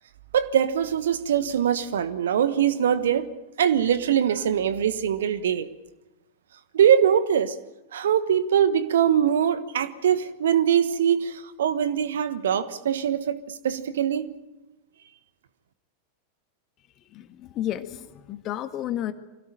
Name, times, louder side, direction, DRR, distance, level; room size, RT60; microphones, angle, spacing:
voice 1, 0.3-3.3 3.6-5.7 6.7-7.5 7.9-14.3, right 9 dB, 60° right, 13 dB, 1.3 m, -22 dB
voice 2, 17.1-19.1, left 12 dB, 35° left, 9 dB, 1.7 m, -32 dB
25.0 x 17.5 x 9.1 m, 1.0 s
figure-of-eight pair, 90°, 0 cm